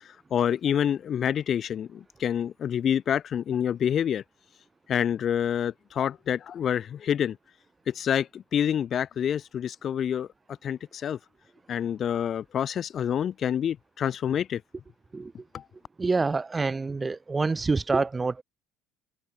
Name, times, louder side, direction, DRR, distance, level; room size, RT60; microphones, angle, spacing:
voice 1, 0.3-4.2 4.9-7.4 7.9-10.3 10.6-11.2 11.7-14.6 15.5-15.6, left 9 dB, 35° left, 1.0 m, -27 dB
voice 2, 16.0-18.4, right 3 dB, 15° right, 2.5 m, -26 dB
cardioid pair, 140°, 0 cm